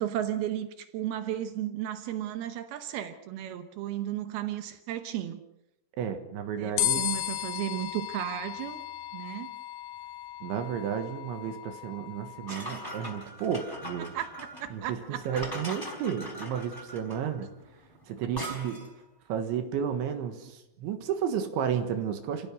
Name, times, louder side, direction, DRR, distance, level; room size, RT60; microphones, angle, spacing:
voice 1, 0.0-5.4 6.6-8.8 9.1-9.6 12.5-12.9 14.1-15.2, right 12 dB, 85° right, 9 dB, 2.2 m, -34 dB
voice 2, 6.0-7.1 10.4-14.1 14.7-17.5 18.1-18.8 19.3-22.5, right 8 dB, 70° right, 7 dB, 3.6 m, -32 dB
sound 1, 6.8-13.2, left 14 dB, 90° left, 4.2 m, -35 dB
sound 2, 12.5-19.0, equal, 5° left, 4.0 m, -41 dB
29.0 x 16.5 x 6.3 m, 0.89 s
omnidirectional pair, 6.0 m